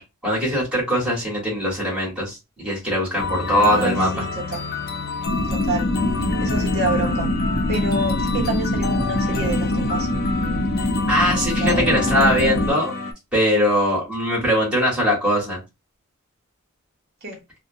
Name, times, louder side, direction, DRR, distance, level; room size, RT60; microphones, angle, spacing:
voice 1, 0.0-4.2 11.1-12.9 13.3-15.6, equal, 5° right, 1.4 m, -21 dB
sound 1, 3.2-13.1, left 4 dB, 45° left, 0.5 m, -29 dB
voice 2, 3.6-4.6 5.5-5.9 6.4-7.3 7.7-10.1 11.3-11.8 17.2-17.4, right 2 dB, 45° right, 0.9 m, -28 dB
sound 2, 5.3-12.7, left 1 dB, 90° left, 0.7 m, -23 dB
2.7 x 2.2 x 2.6 m
head